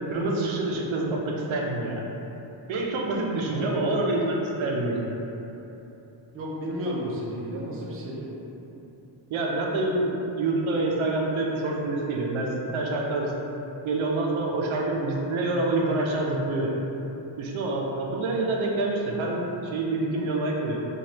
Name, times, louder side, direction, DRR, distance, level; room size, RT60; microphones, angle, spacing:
voice 1, 0.1-2.1 2.7-5.1 9.3-13.3 13.8-16.7 17.4-20.9, right 2 dB, 85° right, -1 dB, 0.6 m, -27 dB
voice 2, 3.5-3.8 6.3-8.3, equal, 30° right, -4 dB, 0.4 m, -33 dB
3.2 x 2.4 x 2.8 m, 3.0 s
wide cardioid pair, 140°, 47 cm